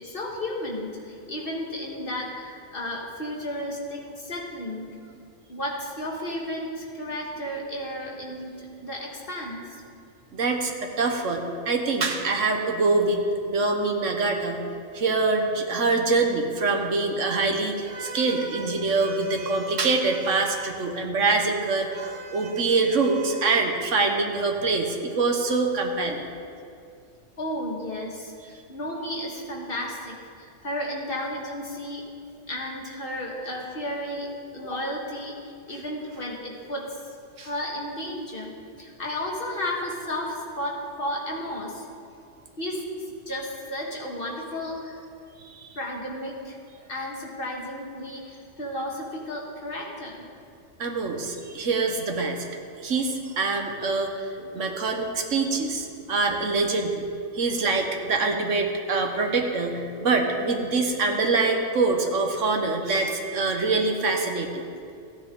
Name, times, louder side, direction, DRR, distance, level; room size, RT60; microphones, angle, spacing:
voice 1, 0.0-5.0 5.5-9.8 27.4-32.0 32.5-37.0 37.4-41.8 42.6-45.0 45.8-46.6 46.9-50.3 54.4-55.0 55.4-55.5 59.7-60.1, left 1 dB, 45° left, -2 dB, 1.8 m, -33 dB
voice 2, 10.3-14.6 14.9-26.3 37.4-37.5 45.4-45.7 50.8-52.4 52.8-57.0 57.3-64.6, right 3 dB, 70° right, 3 dB, 1.4 m, -25 dB
15.0 x 9.7 x 3.8 m, 2.4 s
omnidirectional pair, 1.4 m